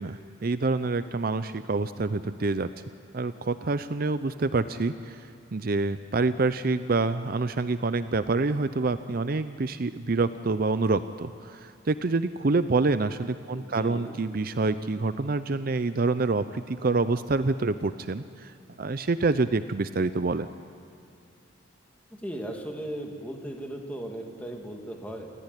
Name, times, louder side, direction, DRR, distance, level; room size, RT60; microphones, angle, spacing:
voice 1, 0.0-2.7 3.1-20.5, right 3 dB, 50° right, 12 dB, 0.6 m, -27 dB
voice 2, 13.5-14.2 22.1-25.3, right 1 dB, 10° left, 1 dB, 2.6 m, -37 dB
27.5 x 14.0 x 9.9 m, 2.8 s
head